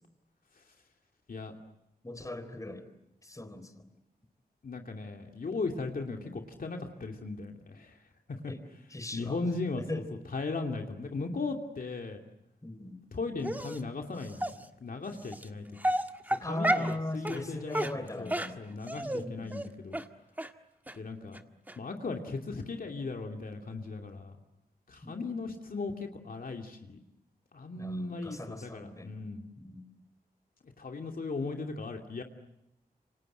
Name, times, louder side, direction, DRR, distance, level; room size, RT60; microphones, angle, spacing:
voice 1, 2.0-2.9 3.2-3.9 6.1-6.4 8.5-8.6 8.9-9.4 9.8-10.1 12.6-13.0 16.4-18.6 19.0-19.6 25.0-25.2 27.8-29.3 29.6-29.9, left 1 dB, 20° left, 10 dB, 4.0 m, -39 dB
voice 2, 4.6-7.9 8.3-8.5 9.1-10.0 10.3-12.2 13.1-14.5 14.8-15.9 16.4-17.9 18.2-20.0 20.9-21.4 21.8-24.4 24.9-27.0 27.5-29.4 30.8-32.2, left 3 dB, 65° left, 3 dB, 2.8 m, -37 dB
Dog, 13.4-13.8 14.4-14.5 15.3-15.4 15.8-16.9 17.2-17.4 17.7-19.2 19.5-19.7 19.9-20.0 20.4-20.5 20.9-21.0 21.3-21.4 21.7-21.8, right 1 dB, 10° right, 1.7 m, -31 dB
28.5 x 25.5 x 8.0 m, 0.84 s
wide cardioid pair, 80°, 16 cm